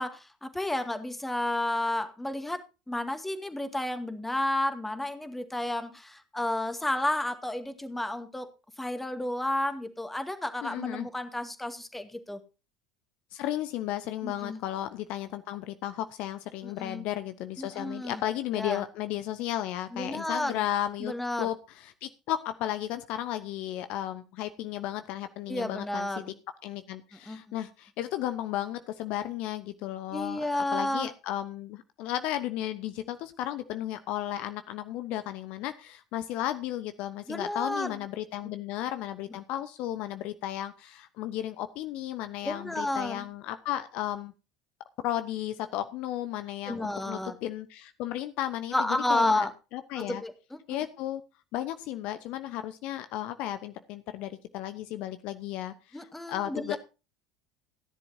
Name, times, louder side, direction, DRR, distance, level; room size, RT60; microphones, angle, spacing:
voice 1, 0.0-8.5 8.8-12.4 14.2-14.6 16.6-17.0 17.6-18.2 18.5-18.8 19.9-20.6 21.0-21.5 25.5-26.3 27.3-27.4 30.1-31.1 37.3-38.0 42.4-43.3 46.7-47.3 48.7-49.5 50.0-50.6 55.9-56.8, left 1 dB, 5° left, 8 dB, 2.1 m, -31 dB
voice 2, 10.6-11.1 13.3-21.1 21.4-26.1 26.6-44.3 45.0-49.5 49.7-50.2 50.7-51.2 51.5-56.8, left 13 dB, 50° left, 10 dB, 0.9 m, -34 dB
16.5 x 11.0 x 2.8 m, 0.30 s
figure-of-eight pair, 65°, 2 cm